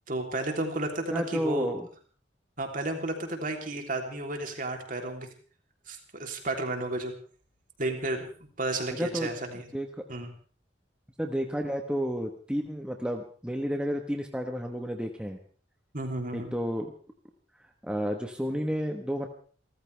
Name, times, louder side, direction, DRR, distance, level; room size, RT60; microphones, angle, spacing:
voice 1, 0.1-1.7 2.6-5.3 5.9-7.1 7.8-8.3 8.6-9.7 10.1-10.3 15.9-16.5, right 2 dB, 45° right, 3 dB, 3.3 m, -32 dB
voice 2, 1.1-1.9 9.0-9.3 9.5-10.0 11.2-15.4 16.3-16.9 17.8-19.3, equal, 5° right, 3 dB, 1.3 m, -31 dB
29.0 x 14.0 x 3.4 m, 0.41 s
head